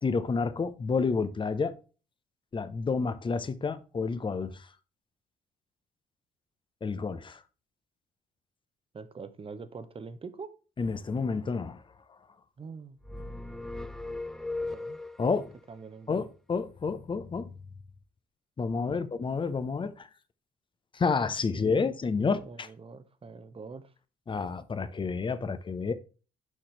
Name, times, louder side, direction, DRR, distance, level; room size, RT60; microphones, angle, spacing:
voice 1, 0.0-1.8 2.5-4.7 6.8-7.4 10.8-11.8 15.2-15.5 16.1-17.5 18.6-20.1 20.9-22.7 24.3-25.9, left 4 dB, 30° left, 0.8 m, -30 dB
voice 2, 8.9-10.5 12.6-13.0 14.6-16.2 18.7-19.1 21.5-23.9, right 4 dB, 30° right, 1.0 m, -45 dB
sound 1, 13.0-15.5, left 2 dB, ahead, 0.5 m, -37 dB
6.4 x 5.8 x 3.3 m
hypercardioid pair, 50°, 18 cm